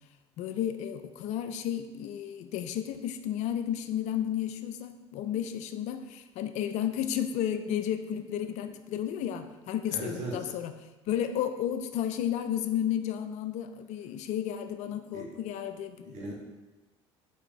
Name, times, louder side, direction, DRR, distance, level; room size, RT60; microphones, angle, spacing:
voice 1, 0.4-10.7 11.1-16.2, left 10 dB, 60° left, 8 dB, 0.4 m, -32 dB
voice 2, 9.9-10.3 15.1-15.2 16.0-16.3, right 2 dB, 55° right, -2 dB, 1.3 m, -37 dB
4.2 x 3.4 x 3.1 m, 1.1 s
hypercardioid pair, 75°, 14 cm